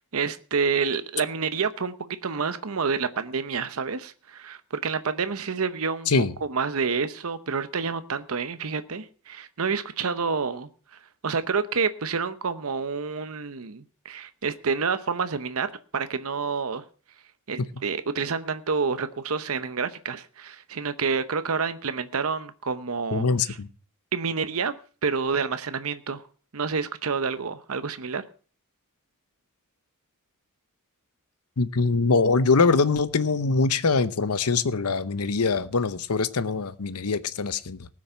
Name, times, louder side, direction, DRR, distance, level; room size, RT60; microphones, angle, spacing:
voice 1, 0.0-10.7 11.2-16.8 17.5-23.2 24.1-24.7 25.0-26.2 26.5-28.2, right 5 dB, 70° right, 11 dB, 0.8 m, -28 dB
voice 2, 23.1-23.7 31.6-37.9, left 4 dB, 85° left, 14 dB, 0.8 m, -23 dB
19.0 x 6.4 x 5.7 m, 0.40 s
head